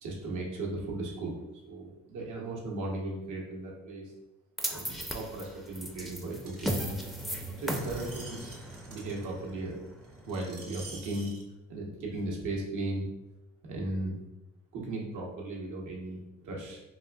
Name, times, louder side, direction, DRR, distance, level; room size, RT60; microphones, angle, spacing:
voice 1, 0.0-4.1 4.7-6.8 7.6-8.4 8.9-9.8 10.3-11.3 11.7-13.1 13.6-14.2 14.7-16.8, right 2 dB, 85° right, -2 dB, 0.9 m, -36 dB
sound 1, 4.6-10.9, equal, ahead, 0.3 m, -37 dB
Screech, 6.5-11.4 12.1-12.2, right 3 dB, 50° right, 0.7 m, -49 dB
4.1 x 2.5 x 2.3 m, 0.99 s
cardioid pair, 90°, 30 cm